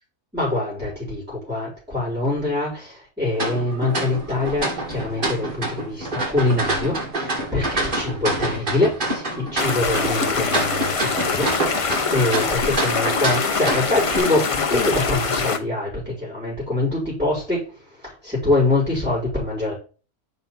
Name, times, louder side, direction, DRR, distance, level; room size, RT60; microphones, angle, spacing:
voice 1, 0.3-19.7, left 2 dB, 5° right, -7 dB, 4.1 m, -24 dB
sound 1, 3.3-14.2, right 2 dB, 35° right, 2.0 m, -27 dB
sound 2, 9.6-15.6, left 5 dB, 45° left, 0.4 m, -24 dB
5.5 x 4.2 x 5.5 m, 0.36 s
omnidirectional pair, 1.5 m